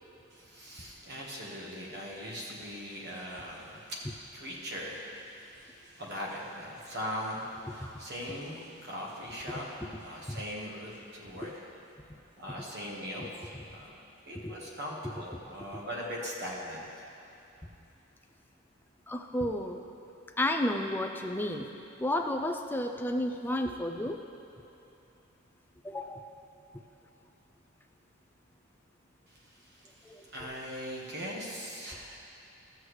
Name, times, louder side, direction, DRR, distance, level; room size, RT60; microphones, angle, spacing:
voice 1, 0.3-11.5 12.4-14.0 14.3-16.8 29.3-32.2, equal, 50° right, -3 dB, 1.5 m, -40 dB
voice 2, 19.1-19.8 20.4-21.7 22.0-24.2 25.8-26.3 30.1-30.5, left 1 dB, 10° left, 4 dB, 0.3 m, -32 dB
13.0 x 8.0 x 3.2 m, 2.8 s
head